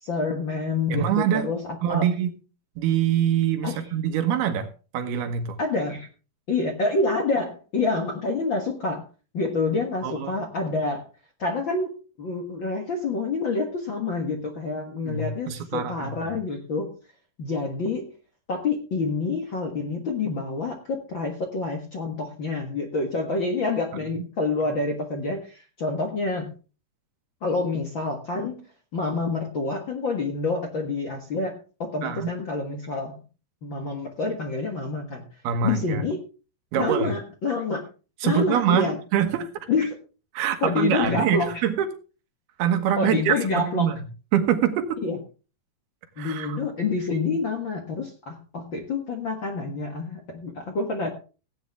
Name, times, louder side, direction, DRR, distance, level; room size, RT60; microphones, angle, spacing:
voice 1, 0.0-2.1 3.6-3.9 5.6-6.1 6.5-9.0 9.3-11.0 11.4-16.9 17.4-18.1 18.5-26.5 27.4-28.6 28.9-33.2 33.6-35.2 35.6-36.2 36.7-37.8 38.2-39.0 39.7-40.0 40.6-41.6 42.9-43.9 45.0-45.2 46.2-51.1, left 3 dB, 50° left, 3 dB, 1.4 m, -27 dB
voice 2, 0.9-1.5 1.8-2.4 2.8-4.7 4.9-5.6 10.0-10.5 15.0-16.3 24.2-24.3 32.0-32.3 35.4-36.0 36.7-37.1 38.2-39.5 40.3-41.9 42.6-44.0 44.3-45.0 46.2-46.6, right 9 dB, 90° right, 7 dB, 3.3 m, -24 dB
17.0 x 8.9 x 3.5 m, 0.35 s
omnidirectional pair, 4.3 m